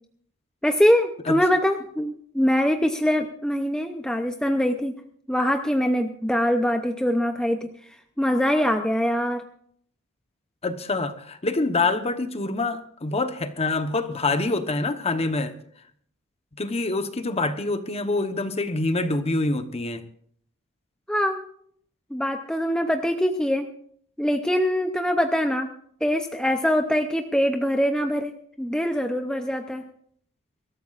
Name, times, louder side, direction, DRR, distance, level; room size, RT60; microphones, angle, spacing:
voice 1, 0.6-4.9 5.3-7.7 8.2-9.4 21.1-21.4 22.1-23.7 24.2-25.7 26.0-28.3 28.6-29.8, equal, 5° left, 0.6 m, -23 dB
voice 2, 10.6-15.6 16.6-20.0, left 2 dB, 30° left, 1.0 m, -26 dB
25.0 x 13.5 x 2.5 m
head